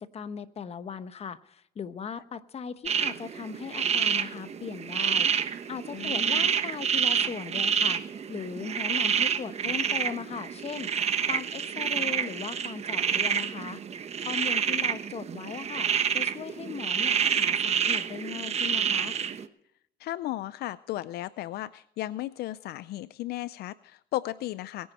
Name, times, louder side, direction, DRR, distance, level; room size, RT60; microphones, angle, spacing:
voice 1, 0.0-10.9 11.3-13.8 14.2-15.9 16.1-19.2, left 6 dB, 40° left, 12 dB, 1.0 m, -38 dB
sound 1, 2.9-19.5, right 7 dB, 40° right, 1.0 m, -28 dB
voice 2, 5.9-6.5 20.0-24.9, left 15 dB, 70° left, 16 dB, 0.5 m, -35 dB
21.5 x 10.0 x 4.3 m, 0.74 s
cardioid pair, 110°, 17 cm